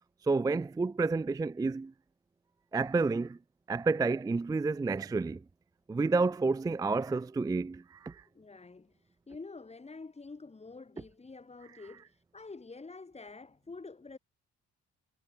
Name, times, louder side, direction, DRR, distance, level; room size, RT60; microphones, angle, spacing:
voice 1, 0.2-1.9 2.7-3.4 3.7-5.4 5.9-8.2, right 3 dB, 15° right, 0.4 m, -30 dB
voice 2, 8.3-14.2, left 3 dB, 20° left, 2.1 m, -48 dB
cardioid pair, 90°, 30 cm